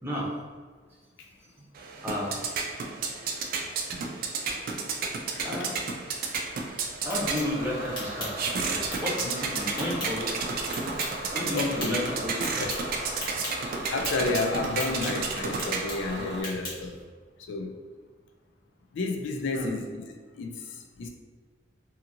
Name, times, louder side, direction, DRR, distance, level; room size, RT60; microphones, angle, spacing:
sound 1, 1.8-16.2, right 4 dB, 50° right, 0.3 m, -32 dB
voice 1, 2.0-2.5 5.4-5.7 7.0-8.3 8.6-8.7 9.0-10.3 11.3-12.6 19.5-19.7, left 1 dB, 10° right, -5 dB, 0.7 m, -32 dB
voice 2, 5.4-5.7 11.1-11.2 11.5-12.1 12.4-12.9 13.9-17.0 17.4-17.8 18.9-21.1, left 3 dB, 85° left, 2 dB, 0.4 m, -32 dB
sound 2, 6.8-17.0, left 1 dB, 25° left, 1.0 m, -41 dB
Bus / Engine, 7.1-16.4, right 1 dB, 75° right, 0.8 m, -38 dB
2.8 x 2.6 x 2.5 m, 1.5 s
head